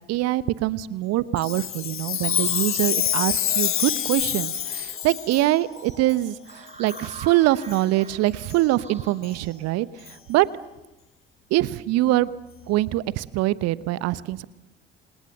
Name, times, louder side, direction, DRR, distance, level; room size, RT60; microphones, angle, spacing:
voice 1, 0.1-10.5 11.5-12.4 12.7-14.4, right 16 dB, 60° right, 19 dB, 1.0 m, -24 dB
Chime, 1.4-5.4 6.1-6.2 6.9-7.1 7.6-7.8 8.5-8.6 9.2-9.3 10.1-10.2, left 10 dB, 45° left, 1.6 m, -26 dB
sound 1, 2.1-10.5, right 1 dB, 25° right, 6.5 m, -45 dB
27.5 x 26.5 x 6.7 m, 0.99 s
figure-of-eight pair, 50°, 29 cm